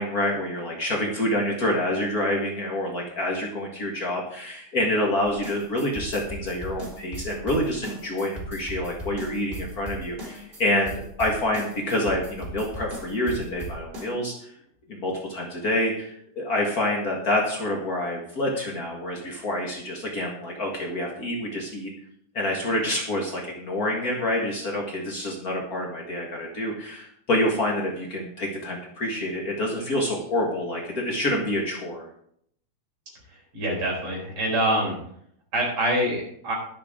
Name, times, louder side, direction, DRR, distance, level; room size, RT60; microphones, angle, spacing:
voice 1, 0.0-14.5 14.9-21.9 22.3-32.0, left 1 dB, 80° left, -1 dB, 0.8 m, -27 dB
sound 1, 5.2-14.1, right 1 dB, 15° right, 2.8 m, -37 dB
voice 2, 33.3-35.0 35.5-36.5, right 1 dB, 45° right, -3 dB, 5.9 m, -25 dB
21.0 x 7.0 x 3.7 m, 0.69 s
omnidirectional pair, 4.6 m